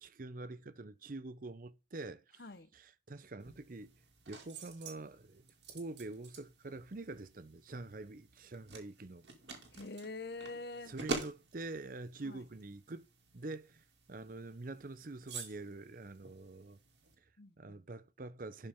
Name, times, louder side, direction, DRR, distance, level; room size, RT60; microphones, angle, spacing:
voice 1, 0.0-2.4 2.7-3.9 4.3-9.3 10.9-13.1 13.3-16.8 17.2-17.3 17.6-18.7, right 2 dB, 45° right, 0.6 m, -46 dB
sound 1, 3.4-17.2, right 3 dB, 65° right, 2.3 m, -48 dB
voice 2, 9.7-10.9 12.2-12.4 17.4-17.8, left 3 dB, 55° left, 0.9 m, -45 dB
11.5 x 5.4 x 3.6 m
head